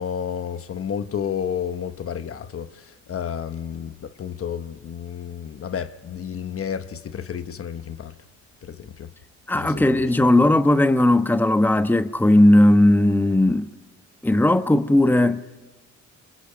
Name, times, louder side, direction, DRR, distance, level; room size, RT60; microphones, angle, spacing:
voice 1, 0.0-8.1 8.6-9.1 9.5-10.1, left 8 dB, 50° left, 1.2 m, -31 dB
voice 2, 9.5-13.7 14.2-15.4, left 1 dB, 5° left, 1.1 m, -17 dB
27.5 x 27.0 x 5.1 m
cardioid pair, 90°, 30 cm